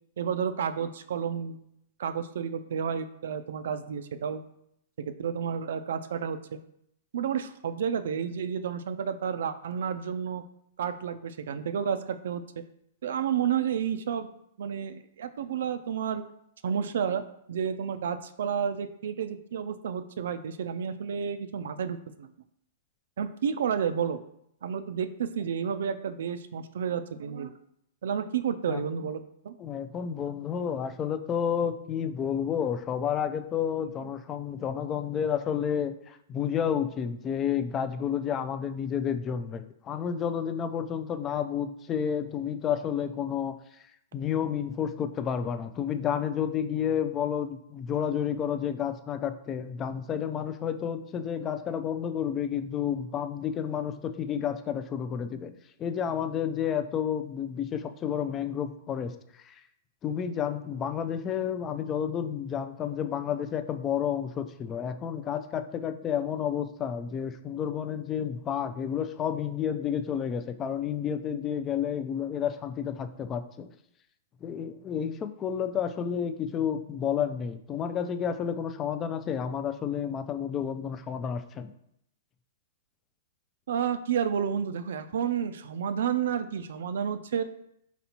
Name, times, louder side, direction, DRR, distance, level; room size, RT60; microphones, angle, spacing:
voice 1, 0.2-1.6 2.0-4.4 5.0-6.6 7.1-10.4 10.8-12.4 13.0-14.3 14.6-16.2 16.6-22.3 23.2-24.2 24.6-27.5 28.0-29.6 33.8-33.9 83.7-87.4, right 7 dB, 75° right, 10 dB, 0.3 m, -31 dB
voice 2, 29.6-43.6 44.1-59.1 59.4-59.6 60.0-73.7 74.4-81.7, left 8 dB, 20° left, 10 dB, 0.3 m, -30 dB
4.3 x 4.1 x 2.8 m, 0.76 s
hypercardioid pair, 150°, 0 cm